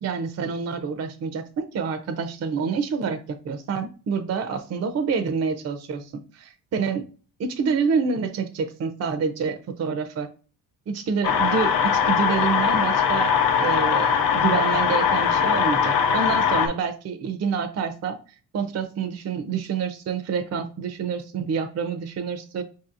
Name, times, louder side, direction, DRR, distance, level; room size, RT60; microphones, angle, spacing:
voice 1, 0.0-7.0 7.4-10.3 10.9-13.3 13.6-18.2 18.5-22.6, right 5 dB, 40° right, 7 dB, 0.5 m, -27 dB
sound 1, 11.2-16.7, left 7 dB, 70° left, 0.8 m, -21 dB
5.2 x 2.7 x 2.5 m, 0.37 s
cardioid pair, 95°, 39 cm